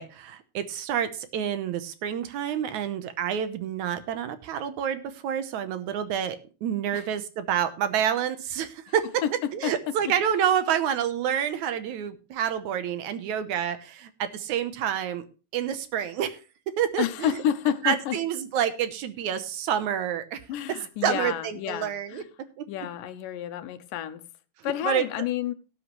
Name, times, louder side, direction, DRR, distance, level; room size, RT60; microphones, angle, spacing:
voice 1, 0.0-6.4 6.6-9.0 9.5-15.2 15.5-16.4 16.8-17.3 17.8-20.4 21.0-22.2 22.6-22.7 24.6-25.0, right 9 dB, 75° right, 2.1 m, -28 dB
voice 2, 9.2-9.9 17.0-18.2 20.5-22.3 22.7-24.2 24.6-25.5, left 10 dB, 90° left, 2.5 m, -30 dB
18.0 x 8.1 x 3.1 m
omnidirectional pair, 3.7 m